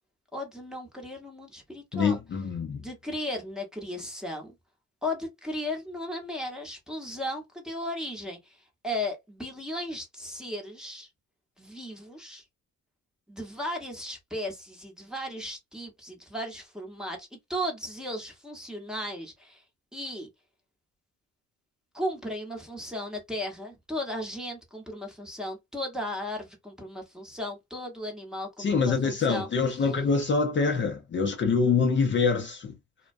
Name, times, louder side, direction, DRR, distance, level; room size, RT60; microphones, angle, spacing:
voice 1, 0.3-2.2 2.7-4.5 5.0-11.1 11.6-12.4 13.3-19.6 19.9-20.3 21.9-29.5 29.7-29.9, left 1 dB, ahead, 0.9 m, -36 dB
voice 2, 1.9-2.8 28.6-32.8, left 5 dB, 40° left, 0.6 m, -25 dB
2.3 x 2.2 x 2.5 m
cardioid pair, 90°, 30 cm